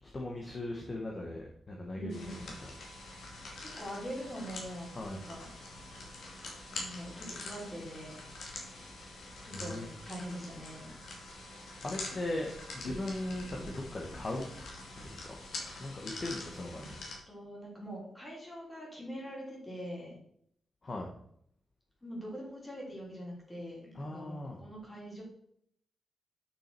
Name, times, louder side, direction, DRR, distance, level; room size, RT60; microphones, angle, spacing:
voice 1, 0.0-2.7 3.3-3.5 4.9-5.2 9.5-9.9 11.8-14.5 15.0-15.4 15.8-16.9 20.8-21.1 23.9-24.6, left 1 dB, 25° left, 0 dB, 1.0 m, -39 dB
voice 2, 2.0-2.5 3.3-5.4 6.7-8.1 9.4-10.9 17.3-20.1 22.0-25.2, equal, 10° left, -4 dB, 3.3 m, -43 dB
sound 1, 2.1-17.2, left 2 dB, 70° left, 2.6 m, -45 dB
8.6 x 6.3 x 4.3 m, 0.69 s
wide cardioid pair, 180°, 0 cm